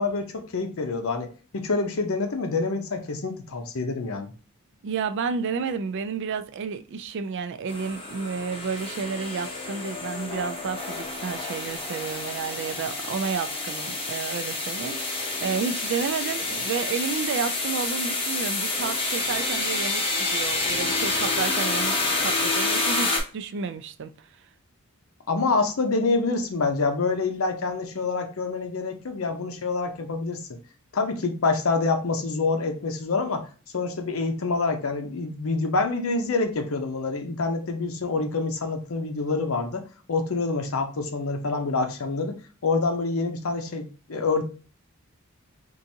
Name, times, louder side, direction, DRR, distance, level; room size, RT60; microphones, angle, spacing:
voice 1, 0.0-4.3 25.3-30.6 30.9-33.5 33.7-39.8 40.1-42.3 42.6-44.4, left 3 dB, 70° left, 0.7 m, -26 dB
voice 2, 4.8-24.1, right 5 dB, 55° right, 0.3 m, -31 dB
sound 1, 7.7-23.2, left 2 dB, 25° left, 0.7 m, -28 dB
4.6 x 2.5 x 2.7 m
head